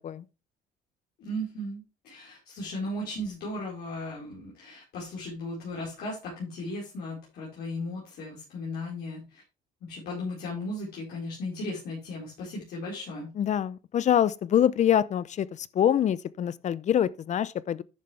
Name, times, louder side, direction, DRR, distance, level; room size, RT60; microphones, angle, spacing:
voice 1, 1.2-9.4 9.8-13.3, left 1 dB, 70° left, 4.6 m, -36 dB
voice 2, 13.4-15.5 15.7-17.8, left 10 dB, 45° left, 0.6 m, -25 dB
11.0 x 6.7 x 3.3 m
cardioid pair, 110°, 17 cm